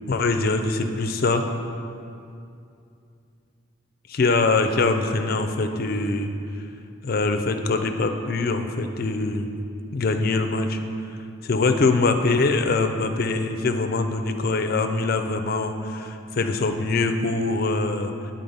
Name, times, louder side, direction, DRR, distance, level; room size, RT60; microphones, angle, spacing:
voice 1, 0.1-1.5 4.1-6.3 7.0-9.5 9.9-10.8 11.4-18.3, left 3 dB, 45° left, 7 dB, 0.4 m, -23 dB
7.9 x 3.9 x 5.4 m, 2.5 s
head